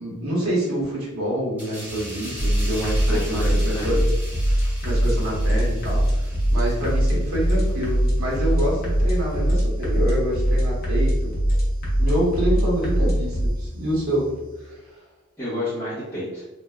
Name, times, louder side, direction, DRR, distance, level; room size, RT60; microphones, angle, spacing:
voice 1, 0.0-4.0 4.4-11.3 12.0-14.3 14.6-15.0, equal, 85° right, -4 dB, 1.3 m, -27 dB
sound 1, 1.6-8.8 9.1-9.3, right 1 dB, 10° right, 0.7 m, -40 dB
sound 2, 1.8-15.0, left 1 dB, 65° right, 0.5 m, -41 dB
sound 3, 2.4-13.5, equal, 45° left, 0.9 m, -22 dB
voice 2, 3.1-4.0 15.4-16.4, left 1 dB, 15° left, -14 dB, 1.0 m, -30 dB
3.2 x 2.7 x 2.3 m, 1.1 s
head